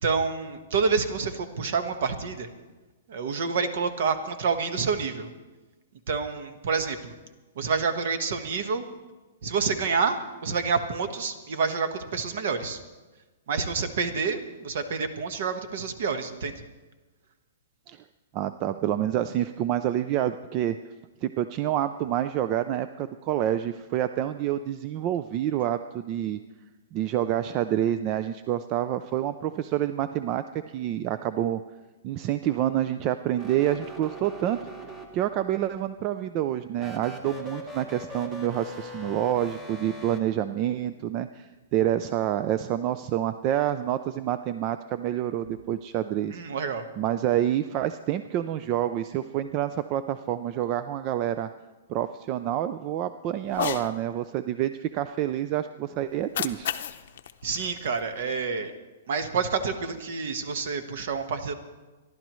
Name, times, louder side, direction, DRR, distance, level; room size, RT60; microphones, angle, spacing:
voice 1, 0.0-2.5 3.1-5.3 6.1-7.1 7.6-8.8 9.4-12.8 13.5-16.6 46.3-46.8 57.4-58.7 59.1-61.5, right 5 dB, 55° right, 8 dB, 1.3 m, -28 dB
voice 2, 18.3-20.8 21.2-26.4 26.9-30.4 30.7-31.6 32.0-34.6 35.1-46.4 47.0-51.5 51.9-56.7, right 11 dB, 25° right, 11 dB, 0.3 m, -28 dB
sound 1, 33.3-35.5 36.7-40.2, left 1 dB, 10° right, 1.1 m, -41 dB
Cat, 53.5-53.9 56.1-58.5, left 9 dB, 55° left, 0.7 m, -34 dB
26.5 x 12.0 x 3.1 m, 1.2 s
hypercardioid pair, 170°, 0 cm